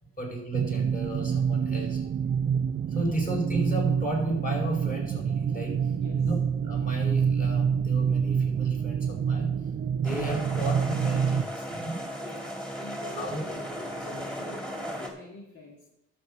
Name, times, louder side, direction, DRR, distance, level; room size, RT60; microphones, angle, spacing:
voice 1, 0.2-2.0 2.9-5.9 6.2-6.4 6.6-9.5 10.0-12.0 13.2-13.4, right 1 dB, 30° left, -1 dB, 5.2 m, -33 dB
sound 1, 0.5-11.4, right 7 dB, 35° right, 0.5 m, -27 dB
voice 2, 1.7-2.0 2.3-2.5 2.9-3.2 5.9-6.3 12.2-15.8, left 1 dB, 50° left, -3 dB, 2.5 m, -45 dB
sound 2, 10.0-15.1, equal, 5° left, 2.5 m, -36 dB
11.5 x 7.3 x 5.5 m, 0.84 s
cardioid pair, 90°, 30 cm